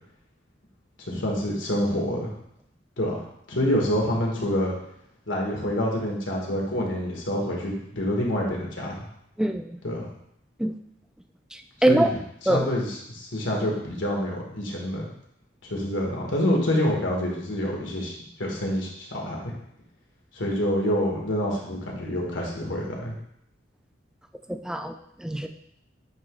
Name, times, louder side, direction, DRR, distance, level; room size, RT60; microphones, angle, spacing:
voice 1, 1.0-2.3 3.0-4.7 5.3-9.0 9.8-10.1 11.9-12.1 12.4-15.1 15.6-19.5 20.3-23.2, left 1 dB, 85° left, -2 dB, 1.6 m, -27 dB
voice 2, 9.4-9.8 10.6-10.7 11.5-12.1 12.5-12.7 24.5-24.9 25.2-25.5, right 1 dB, 5° right, 6 dB, 0.3 m, -23 dB
9.0 x 3.0 x 3.8 m, 0.73 s
head